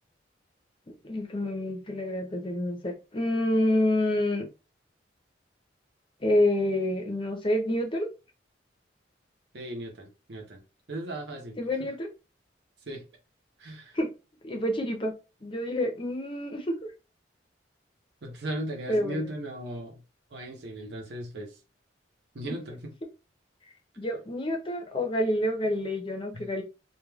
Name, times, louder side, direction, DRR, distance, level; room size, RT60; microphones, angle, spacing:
voice 1, 1.0-4.5 6.2-8.1 11.6-12.1 13.9-14.1 14.4-15.1 15.4-16.6 18.9-19.2 24.0-26.6, left 1 dB, 30° left, 3 dB, 0.6 m, -28 dB
voice 2, 9.5-10.6 10.9-11.6 12.8-13.0 13.6-14.0 18.2-20.0 20.3-21.6 22.3-22.9 26.3-26.5, right 1 dB, 60° right, 1 dB, 0.7 m, -37 dB
2.4 x 2.2 x 3.2 m, 0.30 s
head